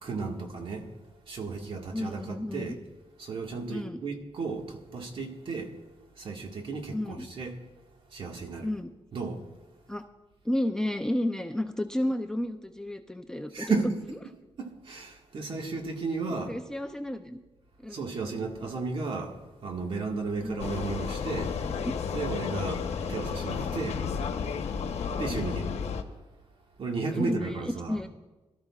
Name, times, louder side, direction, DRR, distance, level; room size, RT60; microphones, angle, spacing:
voice 1, 0.0-0.9 1.3-2.8 3.2-5.7 6.2-7.6 8.1-8.7 9.1-9.4 13.5-14.0 14.6-16.5 17.9-21.5 22.1-24.0 25.2-25.7 26.8-28.0, right 4 dB, 55° right, 1.7 m, -34 dB
voice 2, 1.9-2.7 3.7-4.0 6.9-7.3 8.6-8.9 9.9-10.0 10.4-13.7 16.5-17.4 17.8-18.1 20.4-20.7 21.8-22.0 25.3-25.6 27.1-28.1, left 1 dB, 5° left, 0.5 m, -32 dB
Vehicle, 20.6-26.0, left 6 dB, 75° left, 1.0 m, -32 dB
22.0 x 13.0 x 2.4 m
wide cardioid pair, 145°, 11 cm